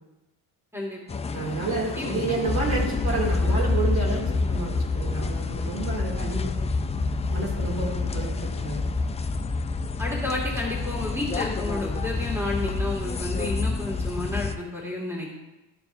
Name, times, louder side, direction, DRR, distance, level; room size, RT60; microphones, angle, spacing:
voice 1, 0.7-1.2 2.0-2.1 10.0-15.3, left 2 dB, 5° right, -4 dB, 2.2 m, -31 dB
sound 1, 1.1-14.6, left 3 dB, 15° left, 0.3 m, -28 dB
voice 2, 1.3-6.5 7.3-8.8, right 3 dB, 55° right, -3 dB, 2.8 m, -30 dB
12.5 x 4.6 x 2.6 m, 0.99 s
cardioid pair, 100°, 41 cm